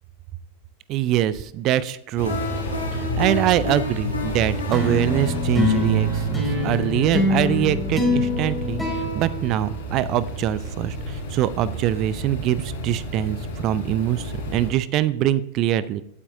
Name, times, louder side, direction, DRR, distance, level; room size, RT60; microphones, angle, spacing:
voice 1, 0.9-2.4 2.9-16.0, right 12 dB, 35° right, 18 dB, 0.4 m, -23 dB
sound 1, 2.2-14.7, equal, 60° left, 3.9 m, -31 dB
sound 2, 2.3-9.0, left 4 dB, 80° left, 2.9 m, -34 dB
sound 3, 4.7-10.3, left 1 dB, ahead, 4.5 m, -25 dB
15.5 x 8.8 x 2.7 m, 0.77 s
figure-of-eight pair, 90°, 0 cm